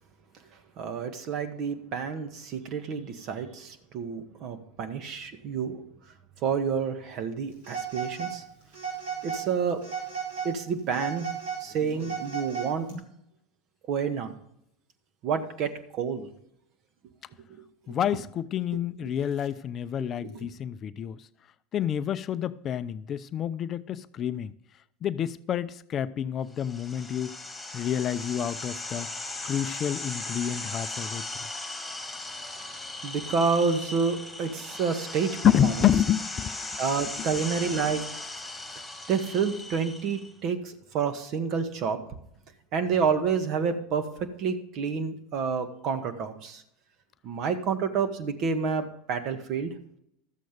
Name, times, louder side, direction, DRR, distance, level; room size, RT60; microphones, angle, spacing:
voice 1, 0.8-5.8 6.4-8.4 9.2-9.8 10.4-11.3 11.6-12.9 13.9-14.3 15.2-16.3 20.2-20.3 33.0-35.4 35.6-35.9 36.8-38.0 39.1-42.0 42.7-44.0 44.4-46.6 47.2-49.7, right 6 dB, 50° right, 1.6 m, -29 dB
Telephone, 7.6-8.4 8.7-9.5 9.8-10.5 10.9-12.9, right 7 dB, 80° right, 5.3 m, -34 dB
voice 2, 17.9-21.2 21.7-24.5 25.0-27.3 27.7-29.1 29.4-31.2 35.4-36.6, left 9 dB, 40° left, 0.5 m, -28 dB
sound 1, 26.5-40.3, left 2 dB, 10° left, 1.8 m, -38 dB
13.0 x 7.7 x 5.2 m
hypercardioid pair, 85°, 0 cm